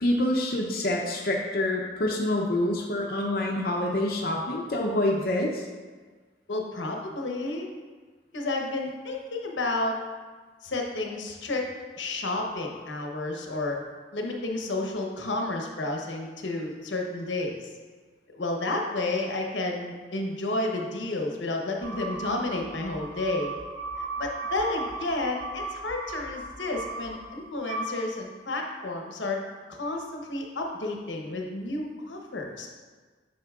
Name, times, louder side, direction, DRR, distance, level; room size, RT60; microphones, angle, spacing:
voice 1, 0.0-5.6, left 1 dB, 55° left, -1 dB, 0.6 m, -26 dB
voice 2, 6.5-7.7 8.3-10.0 10.6-11.6 12.0-13.8 14.1-17.7 18.3-23.6 24.0-29.4 29.7-32.7, left 2 dB, 85° left, 1 dB, 0.9 m, -31 dB
sound 1, 21.8-28.6, right 3 dB, 20° right, 1.9 m, -37 dB
8.1 x 6.0 x 2.4 m, 1.4 s
head